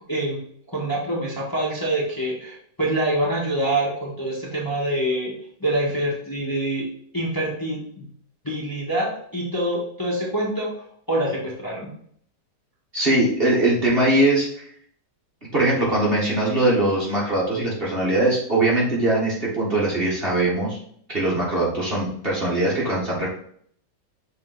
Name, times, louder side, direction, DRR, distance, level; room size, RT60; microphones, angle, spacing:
voice 1, 0.7-5.3 5.6-6.8 7.1-8.1 8.4-11.9, right 1 dB, 10° left, -5 dB, 1.6 m, -25 dB
voice 2, 12.9-14.7 15.5-20.8 21.1-23.3, right 1 dB, 35° right, -5 dB, 1.9 m, -21 dB
6.4 x 4.0 x 4.0 m, 0.62 s
omnidirectional pair, 1.8 m